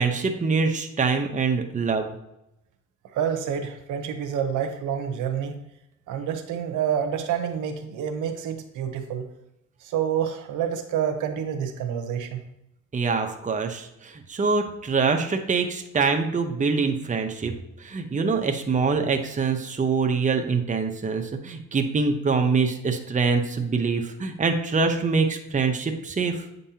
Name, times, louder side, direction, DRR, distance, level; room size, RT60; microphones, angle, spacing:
voice 1, 0.0-2.1 12.9-17.5 17.8-26.4, right 4 dB, 25° right, 4 dB, 0.8 m, -24 dB
voice 2, 3.1-5.5 6.1-9.2 9.8-12.4, right 8 dB, 85° right, 6 dB, 0.9 m, -28 dB
8.3 x 5.4 x 2.8 m, 0.84 s
cardioid pair, 90°, 30 cm